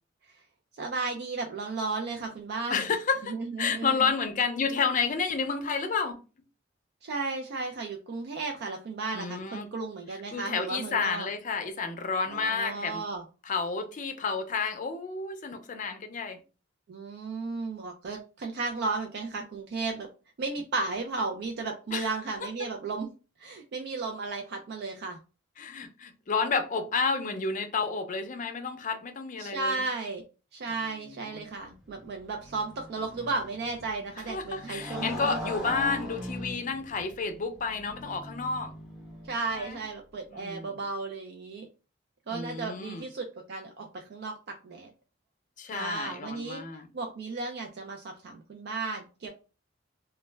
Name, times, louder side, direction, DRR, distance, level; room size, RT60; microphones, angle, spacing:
voice 1, 0.8-2.8 3.3-4.0 7.0-11.3 12.3-13.2 16.9-20.1 20.4-23.1 23.4-25.2 29.4-30.2 30.5-35.4 39.3-41.7 42.3-44.3 44.6-44.9 45.7-49.3, right 3 dB, 60° right, 0.4 m, -34 dB
voice 2, 2.7-6.2 9.1-9.7 10.3-13.0 13.4-16.4 21.9-22.1 25.6-29.8 30.9-31.4 34.3-38.7 39.5-39.8 40.3-40.8 42.3-43.1 45.6-46.9, left 5 dB, 45° left, 0.5 m, -31 dB
Motorcycle, 31.6-39.8, left 1 dB, 5° right, 0.7 m, -41 dB
2.2 x 2.1 x 3.3 m
head